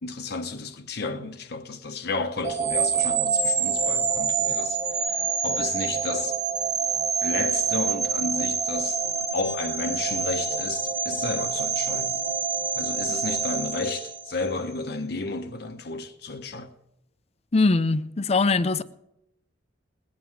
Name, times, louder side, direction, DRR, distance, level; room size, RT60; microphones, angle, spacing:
voice 1, 0.0-6.4 7.2-12.2 12.7-16.7, left 3 dB, 60° left, 0.9 m, -32 dB
sound 1, 2.4-14.6, right 5 dB, 40° right, 1.3 m, -26 dB
voice 2, 17.5-18.8, left 3 dB, 35° left, 0.5 m, -21 dB
20.0 x 9.4 x 4.7 m
head